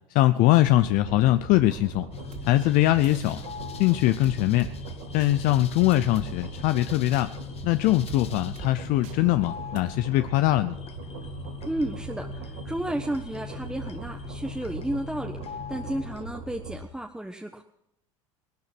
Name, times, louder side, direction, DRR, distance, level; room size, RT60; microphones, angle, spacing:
voice 1, 0.1-2.1 2.5-3.4 3.8-4.7 5.1-7.3 7.6-10.8, left 16 dB, 55° left, 12 dB, 0.6 m, -22 dB
sound 1, 0.7-16.8, right 4 dB, 75° right, 4.4 m, -40 dB
sound 2, 2.1-16.3, left 8 dB, 40° left, 1.4 m, -41 dB
sound 3, 2.3-2.5 3.0-3.4 4.2-4.7 5.2-5.3 5.9-6.3 7.1-7.2 8.1-8.2 8.6-8.7 9.0-9.2 9.8-9.9, right 6 dB, 45° right, 3.1 m, -42 dB
voice 2, 11.6-17.6, right 1 dB, 5° right, 3 dB, 1.2 m, -32 dB
18.0 x 12.5 x 6.0 m, 0.80 s
supercardioid pair, 100°, 17 cm